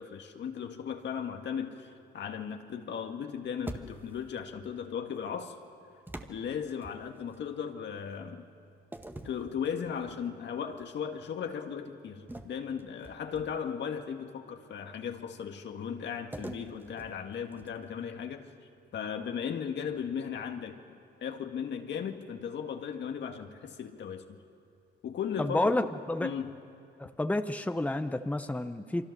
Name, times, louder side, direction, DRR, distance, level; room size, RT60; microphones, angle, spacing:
voice 1, 0.0-5.5 6.3-8.5 9.2-18.5 18.9-20.8 21.2-24.4 25.0-25.9 26.2-26.6, left 7 dB, 65° left, 5 dB, 1.8 m, -36 dB
sound 1, 3.7-4.3 6.1-7.4 8.9-10.3 10.7-11.0 12.3-13.8 16.3-18.0, right 1 dB, 10° right, 1.5 m, -45 dB
voice 2, 25.4-26.3 27.0-29.1, left 2 dB, 5° left, 8 dB, 0.9 m, -30 dB
28.5 x 24.5 x 6.8 m, 2.5 s
cardioid pair, 90°, 20 cm